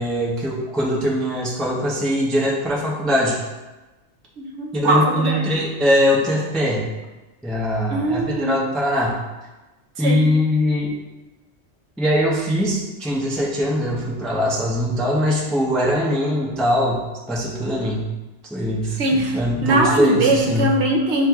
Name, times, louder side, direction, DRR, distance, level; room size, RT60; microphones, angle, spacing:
voice 1, 0.0-3.4 4.7-6.9 7.4-9.2 10.0-10.9 12.0-18.0 18.5-20.7, equal, ahead, -5 dB, 0.4 m, -21 dB
voice 2, 4.4-5.4 7.9-8.5 10.0-10.2 19.0-21.3, right 1 dB, 70° right, 0 dB, 0.9 m, -20 dB
7.4 x 2.6 x 2.2 m, 1.1 s
omnidirectional pair, 1.2 m